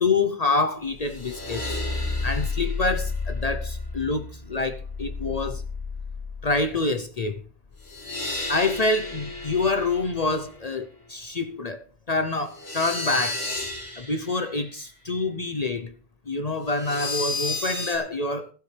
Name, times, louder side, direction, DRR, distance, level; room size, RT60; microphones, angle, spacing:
voice 1, 0.0-1.8 2.2-5.6 6.4-7.4 8.5-13.4 14.0-15.9 16.3-18.5, left 3 dB, 45° left, 0.8 m, -26 dB
sound 1, 0.9-6.8 7.7-10.6 12.5-14.5 16.7-18.0, left 3 dB, 85° left, 2.8 m, -32 dB
16.0 x 12.0 x 3.3 m
omnidirectional pair, 1.0 m